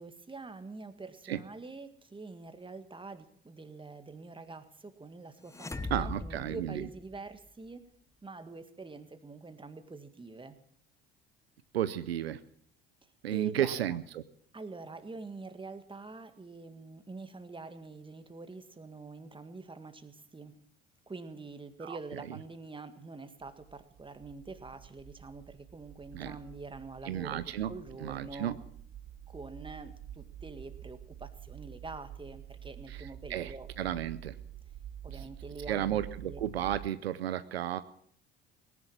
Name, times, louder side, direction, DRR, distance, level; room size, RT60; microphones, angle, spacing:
voice 1, 0.0-7.9 8.2-10.6 13.3-14.0 14.5-20.5 21.1-28.6 29.3-33.7 35.0-36.4, right 3 dB, 15° right, 9 dB, 1.8 m, -45 dB
sound 1, 5.5-7.5, left 2 dB, 10° left, 0.7 m, -40 dB
voice 2, 5.9-6.8 11.7-12.4 13.2-14.2 21.8-22.0 26.1-26.3 27.1-27.7 28.0-28.5 32.9-34.3 35.7-37.8, right 11 dB, 90° right, 13 dB, 0.6 m, -33 dB
sound 2, 23.4-36.9, right 10 dB, 40° right, 0.8 m, -48 dB
18.0 x 10.5 x 7.4 m, 0.63 s
hypercardioid pair, 60°, 30 cm